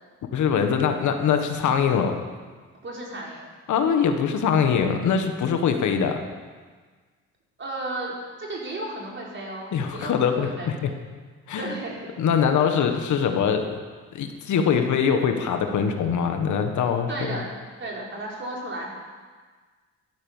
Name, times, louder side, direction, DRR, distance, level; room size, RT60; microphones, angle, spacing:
voice 1, 0.3-2.2 3.7-6.2 9.7-10.9 11.5-11.7 12.2-13.8 14.1-17.4, left 7 dB, 75° left, 6 dB, 1.6 m, -23 dB
voice 2, 2.8-3.4 7.6-10.7 11.6-12.1 17.1-17.5 17.8-18.9, right 2 dB, 40° right, -3 dB, 4.9 m, -34 dB
13.0 x 12.0 x 7.3 m, 1.5 s
cardioid pair, 90°, 30 cm